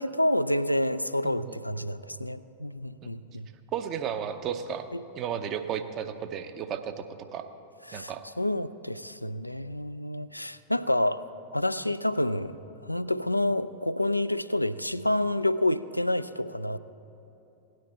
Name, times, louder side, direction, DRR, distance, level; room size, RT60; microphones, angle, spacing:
voice 1, 0.0-3.5 7.9-8.1 8.4-11.2 11.5-12.5 12.8-16.8, left 1 dB, 90° left, 13 dB, 0.3 m, -28 dB
voice 2, 1.2-1.6 3.0-3.1 3.7-4.9 5.2-7.0 7.3-7.5 7.9-8.2, right 8 dB, 35° right, 8 dB, 0.7 m, -33 dB
17.5 x 9.5 x 4.3 m, 2.9 s
figure-of-eight pair, 90°, 0 cm